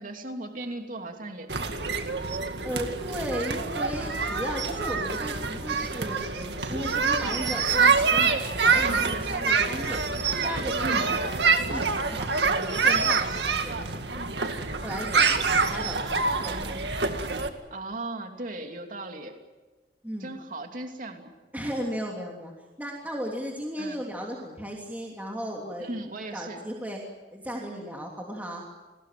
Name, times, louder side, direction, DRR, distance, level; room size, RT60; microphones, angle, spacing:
voice 1, 0.0-2.0 8.8-9.1 10.8-11.1 17.7-19.3 20.2-21.3 23.8-24.0 25.8-26.6, right 1 dB, 50° right, 4 dB, 3.0 m, -37 dB
sound 1, 1.5-17.5, right 4 dB, 75° right, 2.1 m, -26 dB
voice 2, 2.6-10.0 10.4-17.1 20.0-20.3 21.5-22.5 22.8-25.9 26.3-27.0 27.3-28.6, equal, 10° right, -1 dB, 3.2 m, -36 dB
29.5 x 20.5 x 7.7 m, 1.2 s
head